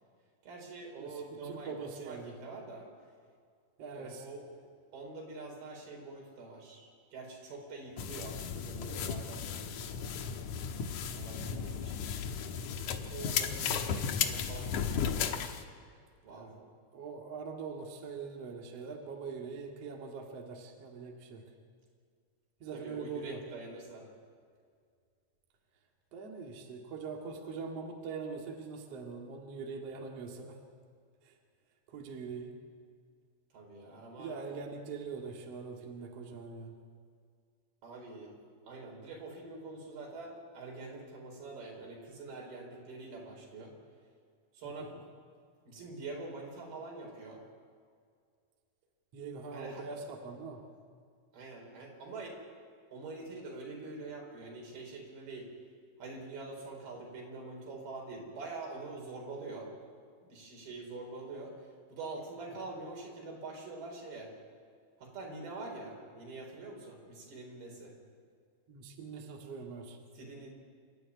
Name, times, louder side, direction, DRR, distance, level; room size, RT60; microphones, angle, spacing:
voice 1, 0.4-1.7 2.0-2.9 4.0-4.6 4.9-10.1 11.1-12.2 12.5-15.3 16.2-16.5 22.7-24.1 33.5-34.4 37.8-38.3 38.7-43.7 44.5-44.9 45.7-47.4 49.5-49.9 51.3-52.4 52.9-55.5 56.0-59.7 60.2-61.6 61.9-64.3 65.0-67.9 70.1-70.5, right 3 dB, 85° right, 0 dB, 6.2 m, -45 dB
voice 2, 1.4-2.3 3.8-4.3 13.2-13.8 16.3-21.4 22.6-23.4 26.1-30.6 31.2-31.3 31.9-32.6 34.2-36.7 49.1-50.6 68.7-70.0, right 5 dB, 45° right, 1 dB, 2.7 m, -43 dB
sound 1, 8.0-15.6, left 7 dB, 65° left, 2.2 m, -35 dB
27.5 x 13.5 x 9.6 m, 2.1 s
omnidirectional pair, 4.3 m